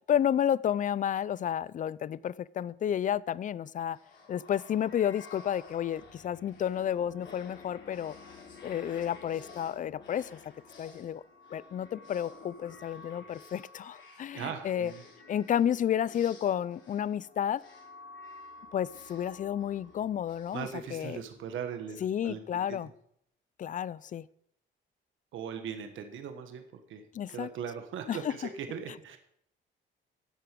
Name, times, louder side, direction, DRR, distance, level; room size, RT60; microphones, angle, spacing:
voice 1, 0.1-4.0 4.3-8.1 8.6-10.5 10.8-11.2 11.5-14.9 15.3-17.6 18.7-21.2 22.0-22.9 23.6-24.2 27.1-27.5 28.1-28.2, left 9 dB, 40° left, 0.4 m, -31 dB
sound 1, 3.9-21.6, left 4 dB, 70° left, 3.6 m, -51 dB
voice 2, 14.3-15.0 20.5-22.9 25.3-29.2, right 7 dB, 80° right, 1.4 m, -40 dB
12.0 x 8.0 x 5.2 m
cardioid pair, 90°, 20 cm